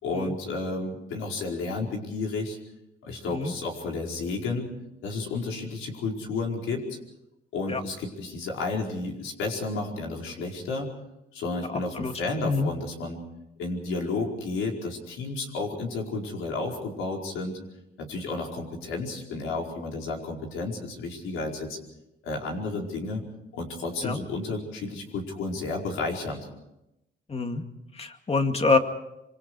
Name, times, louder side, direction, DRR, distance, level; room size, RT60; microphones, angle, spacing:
voice 1, 0.0-2.6 3.0-4.7 5.0-7.0 7.5-10.9 11.3-13.2 13.6-17.6 18.0-21.8 22.2-23.2 23.5-26.5, left 3 dB, 85° left, 0 dB, 4.9 m, -32 dB
voice 2, 11.7-12.1 12.4-12.7 24.0-24.2 27.3-27.6 27.9-28.8, left 3 dB, 30° left, 6 dB, 2.2 m, -26 dB
26.0 x 24.5 x 4.9 m, 0.88 s
cardioid pair, 90°, 20 cm